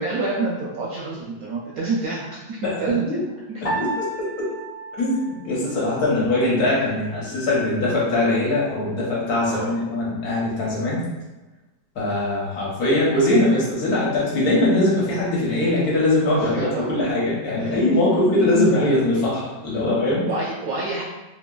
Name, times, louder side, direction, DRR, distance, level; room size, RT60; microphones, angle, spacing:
voice 1, 0.0-3.6 9.4-9.7 16.4-17.0 17.6-18.2 20.2-21.0, right 3 dB, 70° right, -5 dB, 0.8 m, -28 dB
voice 2, 3.6-4.5 5.0-11.0 12.0-20.2, left 1 dB, 60° left, -5 dB, 1.2 m, -21 dB
Piano, 3.7-6.2, right 1 dB, 35° left, 0.6 m, -32 dB
3.1 x 2.8 x 2.2 m, 1.1 s
omnidirectional pair, 2.0 m